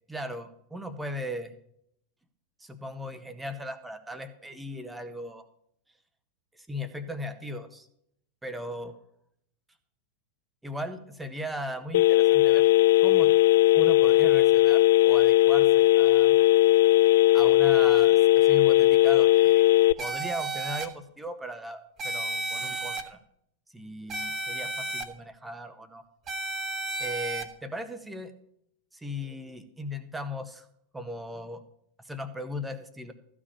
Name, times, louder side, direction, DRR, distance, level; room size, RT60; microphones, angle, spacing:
voice 1, 0.1-1.5 2.6-5.4 6.7-7.9 8.4-9.0 10.6-12.6 13.0-13.3 13.7-16.4 17.3-19.6 20.0-23.2 23.7-26.0 27.0-28.3 28.9-30.7 30.9-31.6 32.0-33.1, equal, 5° right, 10 dB, 1.2 m, -37 dB
Telephone, 11.9-19.9, left 17 dB, 55° left, 0.4 m, -19 dB
sound 1, 20.0-20.9 22.0-23.0 24.1-25.0 26.3-27.4, right 2 dB, 25° right, 1.4 m, -32 dB
14.0 x 5.0 x 8.6 m, 0.73 s
figure-of-eight pair, 90°, 0 cm